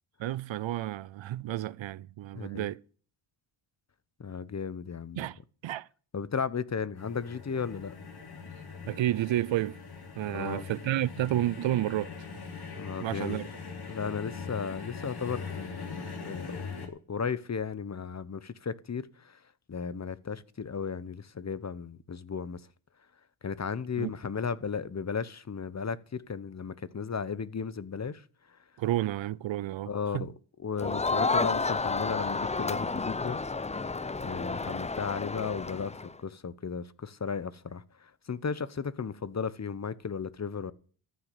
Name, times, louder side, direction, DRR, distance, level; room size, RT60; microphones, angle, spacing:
voice 1, 0.2-2.8 5.2-5.9 8.9-9.8 10.2-12.1 13.0-13.4 24.0-24.1 28.8-30.3, right 13 dB, 65° right, 0.6 m, -31 dB
voice 2, 2.3-2.7 4.2-5.3 6.1-7.9 10.3-10.8 12.8-13.4 13.9-16.6 17.1-19.4 19.7-22.6 23.4-28.6 29.8-30.3 30.6-33.4 34.2-40.7, left 6 dB, 30° left, 1.0 m, -35 dB
sound 1, 7.0-16.9, left 5 dB, 50° left, 3.4 m, -42 dB
Crowd, 30.8-36.1, left 3 dB, 15° left, 0.6 m, -31 dB
14.5 x 6.0 x 9.5 m
cardioid pair, 70°, 50 cm